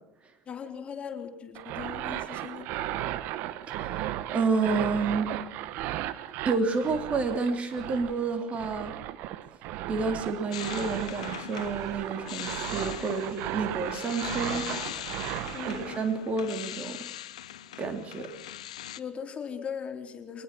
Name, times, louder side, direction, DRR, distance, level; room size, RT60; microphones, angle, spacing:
voice 1, 0.5-3.0 15.5-16.0 19.0-20.4, left 7 dB, 35° left, 4 dB, 3.5 m, -39 dB
sound 1, 1.5-16.0, right 13 dB, 65° right, 1.1 m, -35 dB
voice 2, 3.7-5.3 6.4-8.9 9.9-14.7 15.7-17.0 17.8-18.3, right 4 dB, 35° right, 7 dB, 3.3 m, -30 dB
sound 2, 10.5-19.0, left 12 dB, 85° left, 0.8 m, -40 dB
23.0 x 20.0 x 6.1 m, 0.81 s
hypercardioid pair, 70°, 4 cm